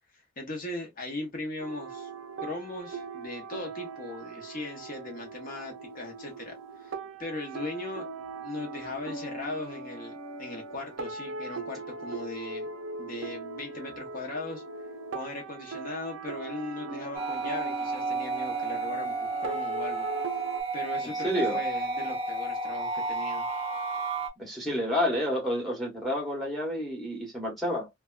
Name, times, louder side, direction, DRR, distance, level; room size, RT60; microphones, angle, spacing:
voice 1, 0.4-2.1 2.4-6.9 7.2-8.1 8.4-12.7 13.0-14.6 15.1-20.1 20.7-23.5, left 2 dB, 45° left, 0.8 m, -38 dB
sound 1, 1.6-20.6, right 3 dB, 70° right, 0.5 m, -40 dB
sound 2, 17.1-24.3, right 3 dB, 30° right, 0.6 m, -32 dB
voice 2, 21.2-21.6 24.4-27.9, left 1 dB, ahead, 0.9 m, -29 dB
2.6 x 2.2 x 2.3 m
head